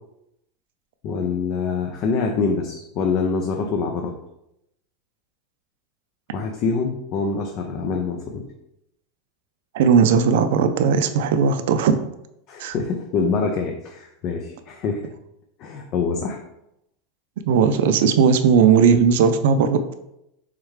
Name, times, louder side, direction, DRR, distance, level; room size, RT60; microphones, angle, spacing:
voice 1, 1.0-4.1 6.3-8.4 12.5-15.1 15.6-16.4, left 4 dB, 40° left, 2 dB, 0.4 m, -25 dB
voice 2, 9.7-12.0 12.6-12.7 17.5-19.8, right 6 dB, 70° right, 9 dB, 0.4 m, -17 dB
3.6 x 3.2 x 3.2 m, 0.82 s
supercardioid pair, 155°, 0 cm